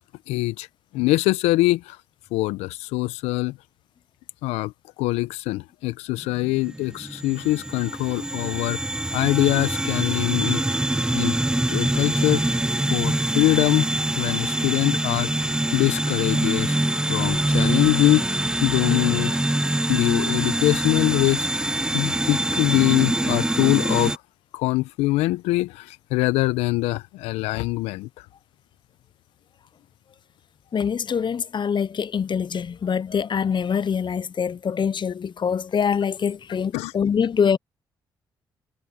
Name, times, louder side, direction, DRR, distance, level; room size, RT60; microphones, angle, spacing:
voice 1, 0.3-0.7 0.9-2.0 2.3-3.6 4.4-4.7 5.0-8.8 9.1-10.8 11.1-11.4 11.7-12.6 12.9-13.9 14.2-16.8 17.1-24.2 24.5-28.1 36.7-36.9, left 19 dB, 80° left, 1.1 m, -23 dB
sound 1, 6.2-24.2, right 1 dB, 5° right, 0.4 m, -24 dB
voice 2, 30.7-37.6, left 7 dB, 45° left, 0.9 m, -24 dB
hypercardioid pair, 45°, 11 cm